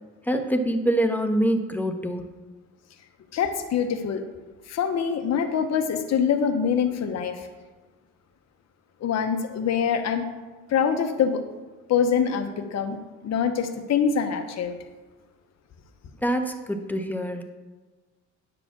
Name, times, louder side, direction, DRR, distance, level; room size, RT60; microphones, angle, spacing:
voice 1, 0.3-2.3 16.2-17.4, right 1 dB, 5° left, 5 dB, 1.1 m, -25 dB
voice 2, 3.3-4.2 4.7-7.5 9.0-10.3 10.7-11.4 11.9-13.0 13.2-14.7, left 7 dB, 60° left, 5 dB, 1.0 m, -24 dB
9.8 x 4.9 x 7.3 m, 1.3 s
cardioid pair, 90°, 30 cm